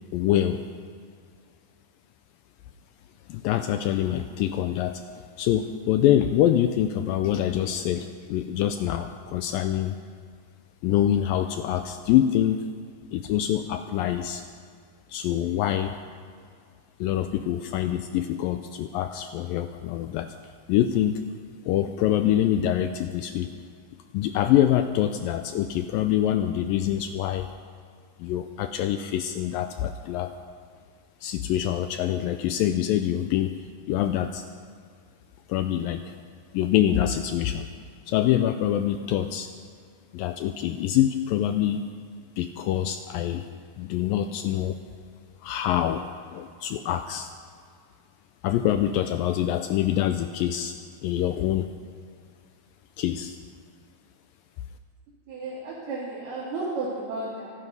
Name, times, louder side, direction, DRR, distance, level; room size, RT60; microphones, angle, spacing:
voice 1, 0.1-0.6 3.3-5.0 5.4-10.0 10.8-12.6 13.1-14.4 15.1-16.0 17.0-20.3 20.7-21.2 21.6-23.5 24.1-27.5 28.2-30.3 31.2-34.4 35.5-36.1 36.5-37.7 38.1-39.5 40.1-41.8 42.4-43.5 43.8-44.8 45.4-46.1 46.3-47.3 48.4-50.8 51.0-51.7 53.0-53.4, left 11 dB, 80° left, 8 dB, 2.1 m, -25 dB
voice 2, 55.3-57.5, right 2 dB, 80° right, -7 dB, 4.6 m, -33 dB
25.5 x 9.4 x 5.5 m, 2.1 s
omnidirectional pair, 4.4 m